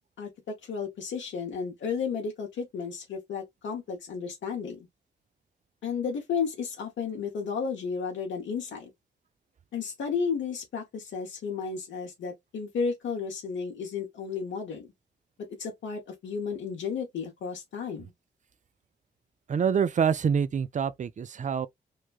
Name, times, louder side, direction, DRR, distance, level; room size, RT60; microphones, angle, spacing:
voice 1, 0.2-4.9 5.8-8.9 9.7-14.9 15.6-18.1, left 6 dB, 70° left, 0.9 m, -33 dB
voice 2, 19.5-21.7, right 7 dB, 40° right, 0.4 m, -26 dB
3.1 x 2.2 x 2.3 m
supercardioid pair, 40°, 20 cm